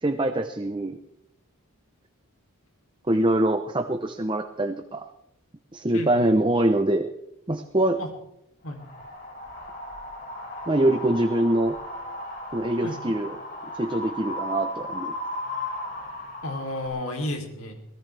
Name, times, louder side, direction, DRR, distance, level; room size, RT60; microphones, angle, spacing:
voice 1, 0.0-1.0 3.1-5.0 5.7-7.1 7.5-8.0 10.7-11.8 12.5-13.4 13.7-15.1, right 1 dB, 20° right, 6 dB, 0.8 m, -24 dB
voice 2, 5.9-6.3 8.0-8.1 8.6-8.8 12.8-13.0 16.4-17.8, left 1 dB, 75° left, 3 dB, 3.3 m, -32 dB
Wind, 8.8-16.9, left 1 dB, 45° left, 5.4 m, -36 dB
23.5 x 17.0 x 3.4 m, 0.82 s
head